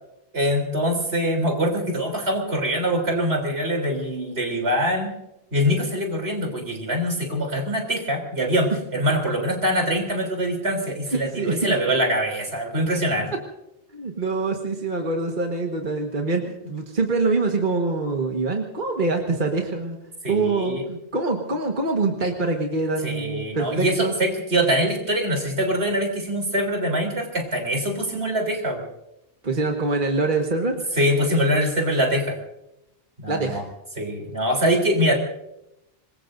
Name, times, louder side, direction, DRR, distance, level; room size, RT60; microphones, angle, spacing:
voice 1, 0.3-5.2 5.5-13.3 20.2-20.9 23.0-28.8 31.0-32.4 33.2-33.6 34.0-35.2, equal, 80° right, 2 dB, 3.8 m, -23 dB
voice 2, 11.1-11.7 13.9-20.0 20.3-24.1 29.4-30.8 33.3-33.6, right 3 dB, 50° right, 2 dB, 1.7 m, -25 dB
26.0 x 21.0 x 2.6 m, 0.85 s
omnidirectional pair, 1.1 m